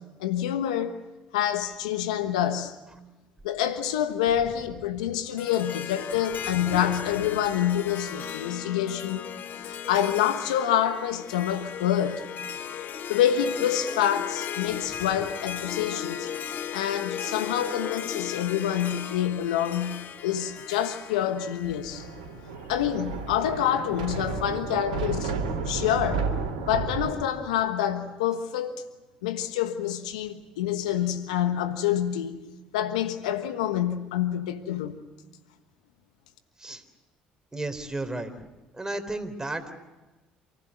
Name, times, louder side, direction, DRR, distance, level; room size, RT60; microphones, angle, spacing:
voice 1, 0.2-1.0 1.3-2.7 3.4-9.3 9.6-12.2 13.1-16.3 16.7-22.0 22.7-25.3 25.7-26.3 26.7-28.8 29.2-32.4 32.7-35.0, left 10 dB, 80° left, 1.3 m, -27 dB
Harp, 5.4-22.6, left 9 dB, 55° left, 1.0 m, -36 dB
Thunder, 21.6-27.1, right 4 dB, 85° right, 2.6 m, -32 dB
voice 2, 37.5-38.3 38.7-39.7, right 2 dB, 15° right, 3.6 m, -33 dB
28.0 x 15.0 x 9.5 m
hypercardioid pair, 60°, 4 cm